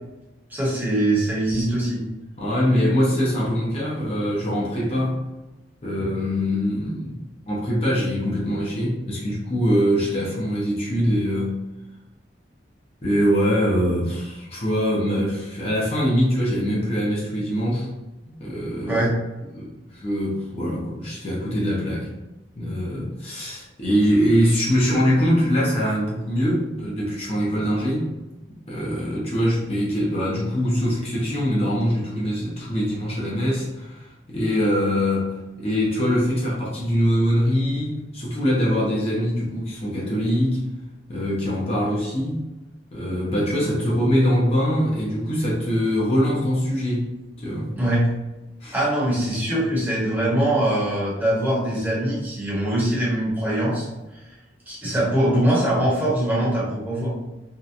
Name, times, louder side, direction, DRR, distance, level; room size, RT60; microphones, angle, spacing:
voice 1, 0.5-2.0 18.9-19.1 47.7-48.0 48.7-53.9 54.7-57.1, right 1 dB, 10° right, -7 dB, 0.9 m, -22 dB
voice 2, 2.4-5.2 5.8-11.6 13.0-17.9 18.3-19.0 19.5-22.1 22.6-28.1 28.7-40.6 41.1-42.4 42.9-47.1 47.4-47.7 48.6-48.7, equal, 35° left, -5 dB, 0.6 m, -23 dB
2.7 x 2.2 x 2.4 m, 1.0 s
head